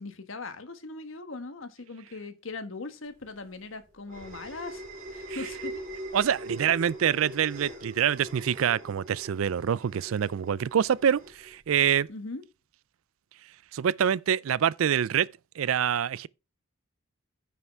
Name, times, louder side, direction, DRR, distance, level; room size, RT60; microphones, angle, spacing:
voice 1, 0.0-4.8 5.1-5.8 12.1-12.4, left 3 dB, 65° left, 1.4 m, -40 dB
sound 1, 3.2-12.0, right 1 dB, 45° right, 4.1 m, -42 dB
voice 2, 6.1-12.1 13.7-15.3 15.6-16.3, right 8 dB, 75° right, 0.4 m, -26 dB
9.6 x 5.8 x 4.6 m
head